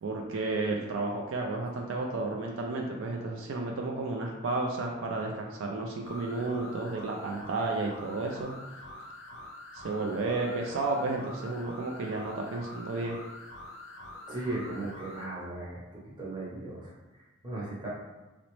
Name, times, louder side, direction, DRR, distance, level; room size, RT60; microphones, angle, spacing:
voice 1, 0.0-8.5 9.7-13.2, right 3 dB, 65° right, 0 dB, 0.4 m, -32 dB
sound 1, 6.0-15.3, left 1 dB, 65° left, 0.5 m, -46 dB
voice 2, 14.3-15.8 16.2-17.9, right 2 dB, 20° right, -6 dB, 0.8 m, -37 dB
3.9 x 2.0 x 3.0 m, 1.1 s
head